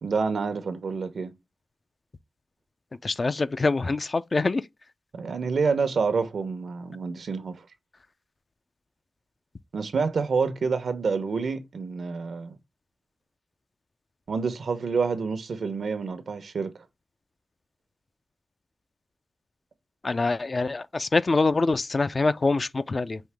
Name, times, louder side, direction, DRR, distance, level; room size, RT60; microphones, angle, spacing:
voice 1, 0.0-1.3 5.1-7.6 9.7-12.6 14.3-16.7, right 5 dB, 90° right, 0.8 m, -28 dB
voice 2, 3.0-4.7 20.0-23.2, left 3 dB, 45° left, 0.4 m, -25 dB
5.5 x 2.9 x 3.3 m
wide cardioid pair, 90°, 0 cm